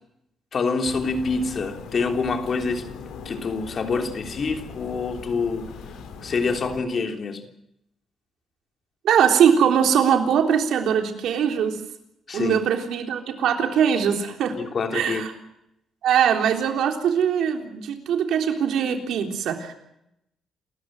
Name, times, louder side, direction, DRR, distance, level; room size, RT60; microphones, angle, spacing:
voice 1, 0.5-2.9 3.2-5.7 6.2-7.4 12.3-12.6 14.5-15.3, left 4 dB, 50° left, 3.3 m, -26 dB
sound 1, 0.8-6.8, left 5 dB, 85° left, 4.2 m, -40 dB
voice 2, 9.0-11.8 12.3-14.6 14.9-15.3 16.0-19.7, right 8 dB, 75° right, 3.7 m, -21 dB
29.5 x 14.5 x 7.8 m
cardioid pair, 90°, 0 cm